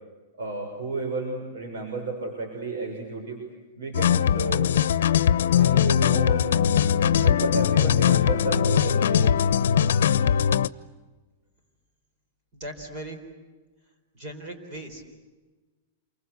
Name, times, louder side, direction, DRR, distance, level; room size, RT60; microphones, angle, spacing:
voice 1, 0.4-3.4 3.8-4.6 5.5-6.5 7.2-9.3, right 3 dB, 75° right, 1 dB, 6.7 m, -32 dB
sound 1, 3.9-10.7, left 9 dB, 85° left, 0.8 m, -21 dB
voice 2, 12.5-13.2 14.1-15.0, right 1 dB, 30° right, 5 dB, 4.1 m, -38 dB
28.5 x 24.5 x 8.2 m, 1.3 s
supercardioid pair, 180°, 0 cm